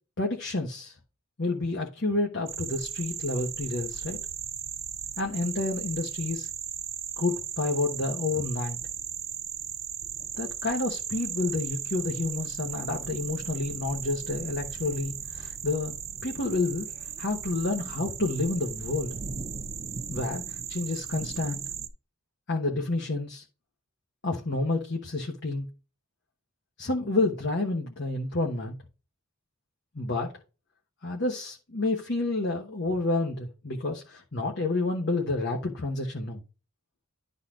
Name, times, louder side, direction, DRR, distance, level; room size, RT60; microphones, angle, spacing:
voice 1, 0.2-0.9 1.4-4.2 5.2-6.5 7.2-8.8 10.4-15.9 16.2-16.9 17.2-19.2 20.1-21.6 22.5-23.4 24.2-25.7 26.8-28.7 29.9-30.3 31.0-36.4, left 2 dB, 55° left, 1.1 m, -29 dB
sound 1, 2.5-21.9, right 8 dB, 30° right, 0.5 m, -36 dB
11.5 x 4.1 x 3.8 m
head